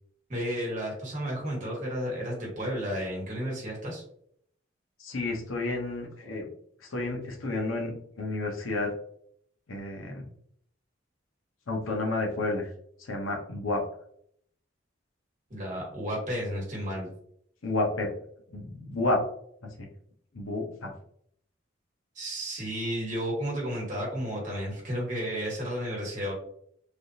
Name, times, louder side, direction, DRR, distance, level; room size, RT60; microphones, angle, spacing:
voice 1, 0.3-4.0 15.5-17.1 22.1-26.3, equal, 40° right, -3 dB, 1.3 m, -32 dB
voice 2, 5.0-6.5 6.8-8.9 9.7-10.3 11.7-12.7 13.0-13.9 17.6-18.1 18.5-19.2 19.6-19.9 20.3-20.9, left 2 dB, 90° left, 1 dB, 0.8 m, -31 dB
3.3 x 2.4 x 2.6 m, 0.67 s
head